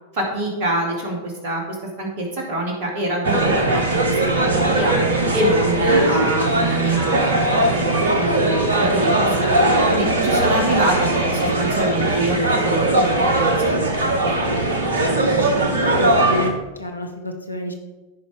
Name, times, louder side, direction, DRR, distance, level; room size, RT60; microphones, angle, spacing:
voice 1, 0.1-1.6 2.0-4.9 5.3-9.1 9.4-9.5 9.9-13.9 14.2-14.3, right 1 dB, 45° right, 0 dB, 2.7 m, -25 dB
sound 1, 3.2-16.5, right 2 dB, 70° right, 1.1 m, -19 dB
voice 2, 15.5-16.5 16.8-17.7, left 2 dB, 80° left, 5 dB, 0.9 m, -30 dB
15.0 x 5.3 x 3.5 m, 1.2 s
figure-of-eight pair, 90°, 0 cm